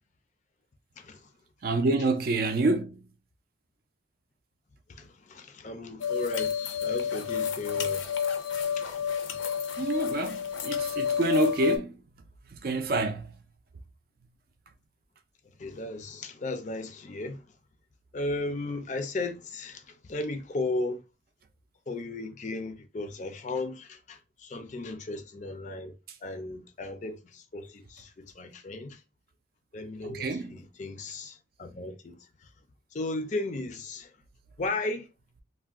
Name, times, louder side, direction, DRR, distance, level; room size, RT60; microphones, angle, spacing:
voice 1, 1.6-3.0 9.8-12.0 12.6-13.3 30.0-30.6, right 2 dB, 50° right, 0.4 m, -27 dB
voice 2, 4.9-8.2 8.8-9.1 15.6-17.4 18.1-21.0 21.9-25.9 26.2-29.0 29.7-32.2 32.9-34.1 34.6-35.1, left 2 dB, 40° left, 0.4 m, -35 dB
sound 1, 6.0-11.8, left 7 dB, 85° left, 0.5 m, -30 dB
2.4 x 2.1 x 3.5 m
head